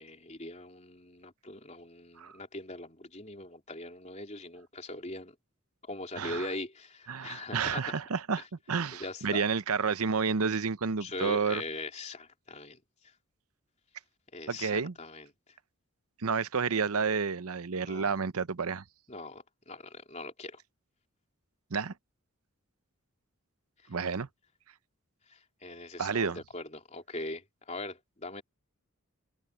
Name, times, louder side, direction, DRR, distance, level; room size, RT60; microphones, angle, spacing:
voice 1, 0.0-5.4 5.9-7.9 8.9-9.5 11.0-12.8 14.3-15.3 17.8-18.1 19.1-20.6 23.8-23.9 25.3-28.4, left 2 dB, 30° left, 3.7 m, -41 dB
voice 2, 6.2-6.5 7.1-11.6 14.5-14.9 16.2-18.8 21.7-21.9 23.9-24.3 26.0-26.4, right 5 dB, 80° right, 0.8 m, -30 dB
open air
head